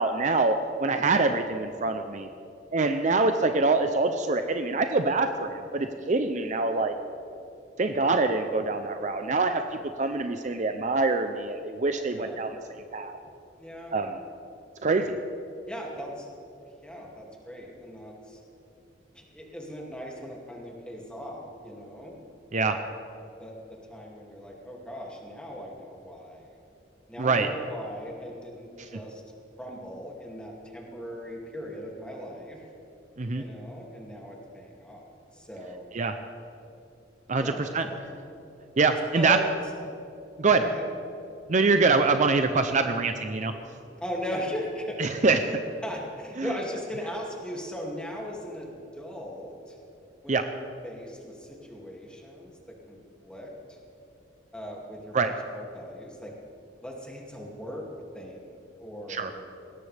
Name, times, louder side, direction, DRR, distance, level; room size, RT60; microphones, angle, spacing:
voice 1, 0.0-2.3 2.7-6.9 7.8-9.6 10.0-12.5 12.9-13.2 13.9-14.2 14.8-15.2 22.5-22.8 27.2-27.5 33.2-33.4 35.9-36.2 37.3-37.9 38.8-39.4 40.4-40.6 41.5-43.5 45.0-45.5 46.4-46.6 50.3-50.5 55.1-55.3 59.1-59.3, right 3 dB, 45° right, 7 dB, 0.6 m, -25 dB
voice 2, 13.6-13.9 15.7-16.3 16.8-18.4 19.1-22.1 22.5-22.9 23.4-26.5 27.1-29.2 29.6-32.6 33.3-35.9 37.4-38.3 39.1-39.4 40.6-40.9 44.0-49.7 50.2-50.6 50.8-53.8 54.5-56.3 56.8-57.9 58.1-59.4, equal, 5° left, -2 dB, 2.5 m, -38 dB
20.5 x 17.5 x 3.5 m, 2.7 s
head